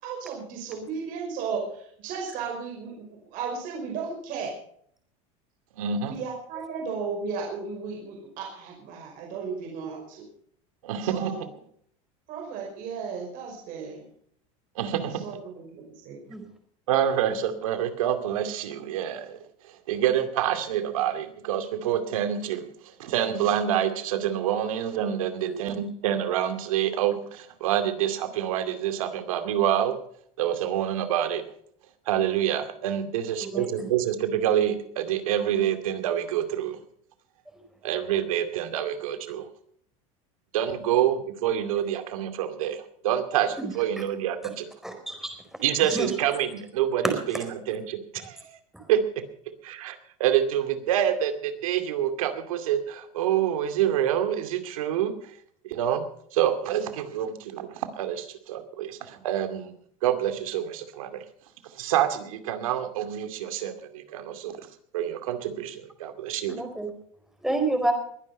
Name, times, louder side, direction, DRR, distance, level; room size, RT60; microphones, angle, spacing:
voice 1, 0.0-3.0 3.3-4.5 6.1-10.2 11.0-11.4 12.3-14.1 15.0-16.2, right 5 dB, 55° right, 0 dB, 5.3 m, -35 dB
voice 2, 5.7-6.2 10.8-11.5 14.8-15.3 16.9-19.4 19.9-22.7 23.0-30.0 30.4-31.4 32.1-36.8 37.8-39.5 40.5-44.7 45.6-48.6 48.9-49.2 49.6-55.1 55.6-56.0 56.3-59.7 60.0-61.2 61.7-64.7 64.9-66.6, right 10 dB, 90° right, 9 dB, 2.5 m, -27 dB
voice 3, 33.4-33.9 43.6-43.7 44.0-44.1 44.8-45.3 45.8-46.1 47.3-47.4 48.7-48.9 66.5-66.9 67.4-67.9, right 2 dB, ahead, 4 dB, 4.4 m, -29 dB
21.5 x 10.5 x 5.5 m, 0.64 s
supercardioid pair, 130°, 17 cm